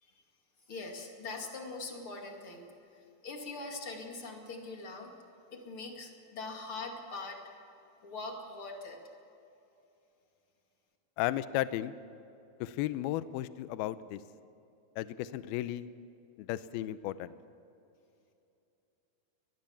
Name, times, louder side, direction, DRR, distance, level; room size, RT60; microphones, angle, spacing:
voice 1, 0.7-5.1 5.5-7.5 8.0-9.0, left 3 dB, 35° left, 2 dB, 2.4 m, -42 dB
voice 2, 11.2-12.0 12.6-14.2 15.0-15.9 16.4-17.3, left 14 dB, 85° left, 14 dB, 2.2 m, -34 dB
22.0 x 21.0 x 7.2 m, 2.8 s
omnidirectional pair, 5.3 m